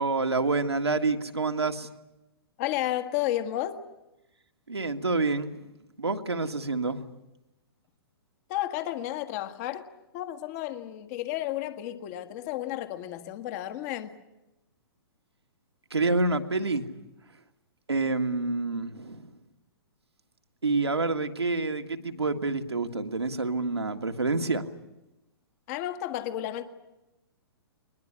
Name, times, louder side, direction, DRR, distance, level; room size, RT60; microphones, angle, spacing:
voice 1, 0.0-1.9 4.7-5.7 6.0-7.1 15.9-16.9 17.9-19.3 20.6-24.7, right 3 dB, 90° right, 1.8 m, -28 dB
voice 2, 2.6-3.8 8.5-9.9 10.1-14.2 25.7-26.7, left 13 dB, 40° left, 1.7 m, -32 dB
21.5 x 21.5 x 9.8 m
figure-of-eight pair, 120°, 13 cm